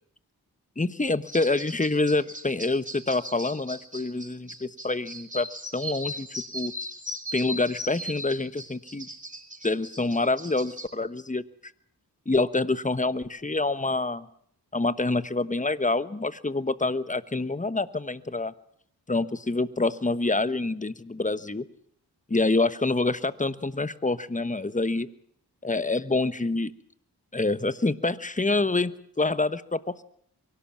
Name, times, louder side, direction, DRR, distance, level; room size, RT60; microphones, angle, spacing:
voice 1, 0.8-5.5 5.7-6.3 6.5-6.7 7.3-9.1 9.6-11.4 12.3-14.3 14.7-18.5 19.1-21.6 22.3-25.1 25.6-26.7 27.3-30.0, left 3 dB, 20° left, 14 dB, 1.2 m, -26 dB
sound 1, 1.3-10.9, equal, 20° right, 3.2 m, -38 dB
23.5 x 17.5 x 7.5 m, 0.64 s
cardioid pair, 50°, 40 cm